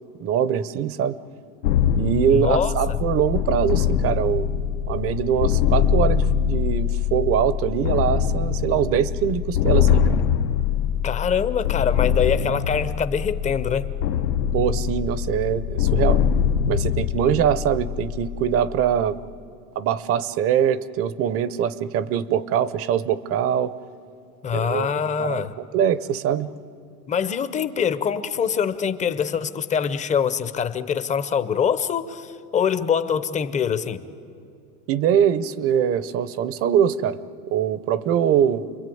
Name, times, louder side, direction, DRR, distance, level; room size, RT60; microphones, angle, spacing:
voice 1, 0.2-1.2 2.0-4.5 4.9-10.2 14.5-16.2 16.7-19.2 19.8-23.7 24.5-26.5 34.9-37.2 37.5-38.7, right 9 dB, 30° right, 17 dB, 0.7 m, -23 dB
sound 1, 1.6-19.3, left 9 dB, 85° left, 1.2 m, -23 dB
voice 2, 2.3-3.0 11.0-13.9 17.2-17.3 24.4-25.5 27.1-34.0, left 7 dB, 15° left, 12 dB, 0.7 m, -24 dB
29.5 x 21.5 x 9.3 m, 2.7 s
supercardioid pair, 140°, 50 cm